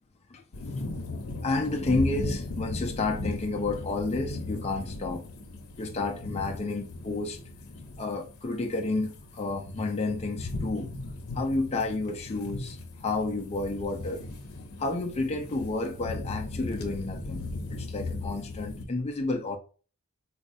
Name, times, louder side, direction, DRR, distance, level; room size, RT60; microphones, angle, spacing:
sound 1, 0.5-18.8, left 2 dB, 75° left, 0.7 m, -37 dB
voice 1, 1.4-5.3 5.8-7.4 8.0-10.9 11.3-14.3 14.8-17.5 17.7-19.6, left 2 dB, 30° left, 0.4 m, -30 dB
4.0 x 2.3 x 2.6 m
head